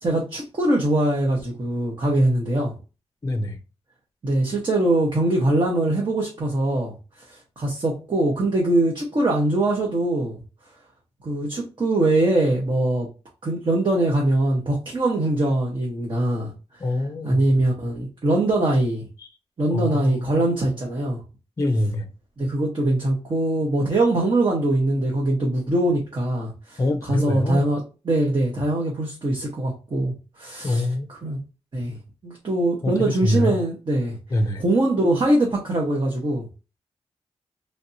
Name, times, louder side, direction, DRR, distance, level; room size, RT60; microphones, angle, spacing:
voice 1, 0.0-2.7 4.2-6.9 7.6-10.4 11.2-13.1 13.4-16.5 17.2-19.0 19.6-21.2 22.4-26.8 27.1-27.8 28.1-30.8 31.2-31.4 31.7-32.0 32.2-34.2 34.6-36.4, right 1 dB, 45° right, 1.0 m, -22 dB
voice 2, 3.2-3.6 16.8-17.4 19.2-19.3 19.7-20.3 21.6-22.1 26.8-27.7 30.6-31.1 32.8-33.6 34.3-34.6, left 1 dB, 30° left, 0.5 m, -24 dB
3.3 x 2.6 x 2.7 m
wide cardioid pair, 95°, 11 cm